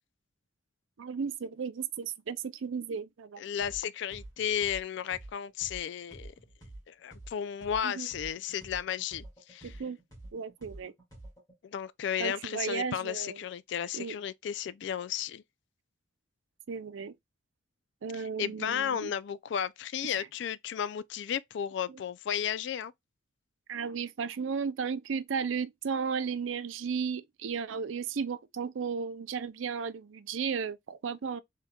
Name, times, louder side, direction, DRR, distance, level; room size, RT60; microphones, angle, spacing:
voice 1, 1.0-3.4 7.8-8.1 9.6-10.0 10.3-10.9 12.2-13.4 13.9-14.2 16.7-17.1 18.0-19.1 23.7-31.4, right 6 dB, 75° right, 0.5 m, -34 dB
voice 2, 3.4-6.3 6.9-9.8 11.6-15.4 18.1-22.9, left 8 dB, 60° left, 0.3 m, -34 dB
sound 1, 3.6-3.8 4.1-7.8 8.1-11.5, right 1 dB, 20° left, 2.0 m, -48 dB
4.2 x 3.6 x 2.3 m
head